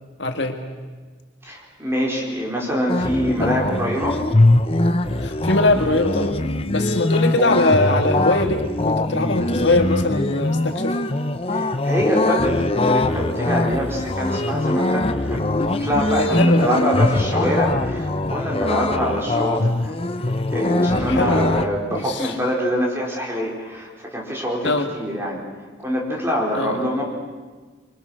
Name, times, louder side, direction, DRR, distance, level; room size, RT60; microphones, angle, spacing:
voice 1, 0.2-0.6 3.4-3.5 5.2-6.3 6.7-11.0 16.3-16.7 21.1-21.5 21.9-22.3 24.6-24.9 26.5-26.8, left 2 dB, 65° left, 5 dB, 1.8 m, -21 dB
voice 2, 1.4-4.2 11.5-25.4 25.8-27.0, equal, 15° right, -2 dB, 4.4 m, -25 dB
sound 1, 2.9-21.7, left 2 dB, 30° left, 0.9 m, -22 dB
25.0 x 24.5 x 6.4 m, 1.4 s
head